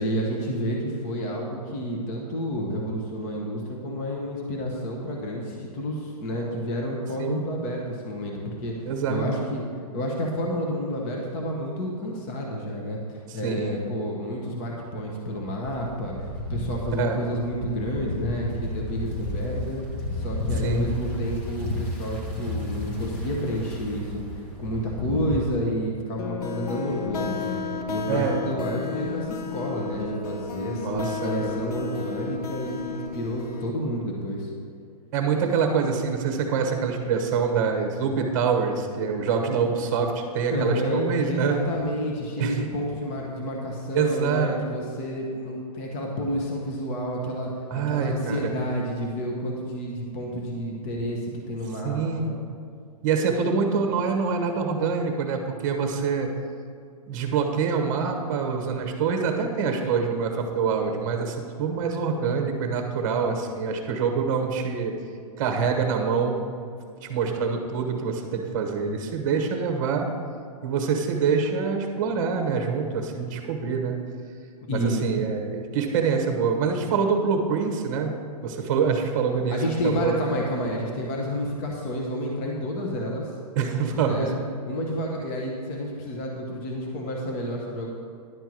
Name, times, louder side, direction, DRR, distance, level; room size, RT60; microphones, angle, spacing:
voice 1, 0.0-9.6 9.9-19.8 20.1-27.6 27.9-34.5 40.5-52.3 74.7-75.2 79.5-83.3 83.6-84.3 84.7-87.9, equal, 20° left, -1 dB, 0.9 m, -30 dB
voice 2, 8.9-9.3 13.3-13.8 17.0-17.2 20.6-20.9 28.1-28.4 30.8-31.5 35.1-41.6 42.4-42.6 43.9-44.6 47.7-48.6 51.8-52.4 53.0-56.3 57.1-64.9 65.4-66.4 67.0-70.1 70.6-74.0 74.7-78.1 78.4-80.2 83.5-84.3, right 5 dB, 30° right, 4 dB, 1.1 m, -25 dB
sound 1, 15.6-25.4, left 1 dB, 5° left, 0.3 m, -32 dB
sound 2, 26.2-33.7, left 5 dB, 75° left, 1.1 m, -33 dB
11.0 x 4.5 x 7.6 m, 2.3 s
hypercardioid pair, 175°, 20 cm